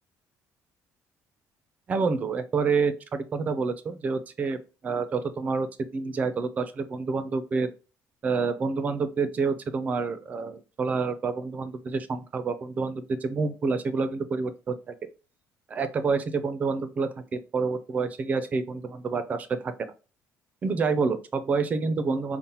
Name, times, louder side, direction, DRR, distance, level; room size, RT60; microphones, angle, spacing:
voice 1, 1.9-4.6 4.8-5.7 5.9-7.7 8.2-14.9 15.7-19.9 20.6-22.4, right 4 dB, 25° right, 11 dB, 0.4 m, -28 dB
5.3 x 2.1 x 2.8 m, 0.33 s
cardioid pair, 175°, 6 cm